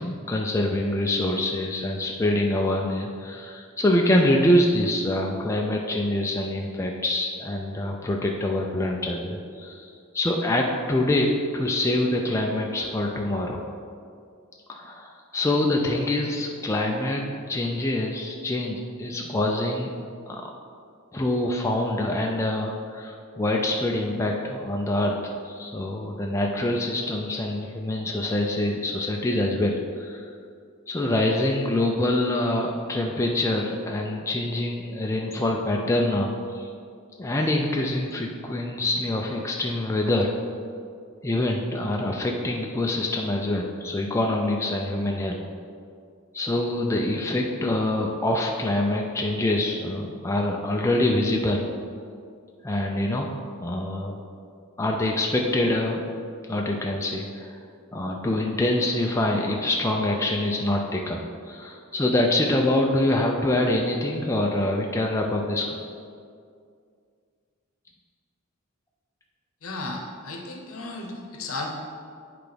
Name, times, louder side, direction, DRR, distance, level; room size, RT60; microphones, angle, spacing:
voice 1, 0.0-9.9 10.1-13.6 14.7-19.9 20.3-20.5 21.1-30.2 30.9-36.7 37.2-40.3 41.2-45.4 46.3-51.7 52.6-53.3 53.6-54.2 54.8-56.0 56.5-57.6 57.9-61.2 61.5-65.8, left 1 dB, 15° left, 0 dB, 0.4 m, -25 dB
voice 2, 69.6-71.7, left 2 dB, 70° left, 2 dB, 0.9 m, -34 dB
8.0 x 3.4 x 5.1 m, 2.3 s
head